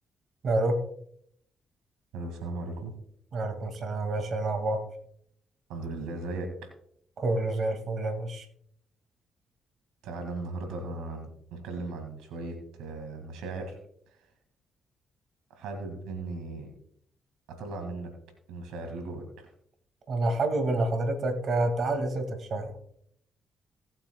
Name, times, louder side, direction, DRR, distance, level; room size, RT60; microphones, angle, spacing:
voice 1, 0.4-0.8 3.3-4.8 7.2-8.4 20.1-22.7, right 2 dB, 60° right, 6 dB, 2.2 m, -28 dB
voice 2, 2.1-2.9 5.7-6.7 10.0-13.8 15.5-16.7 17.5-18.1 18.5-19.5, right 3 dB, 85° right, 5 dB, 2.1 m, -37 dB
18.5 x 8.8 x 2.3 m, 0.69 s
supercardioid pair, 60°, 0 cm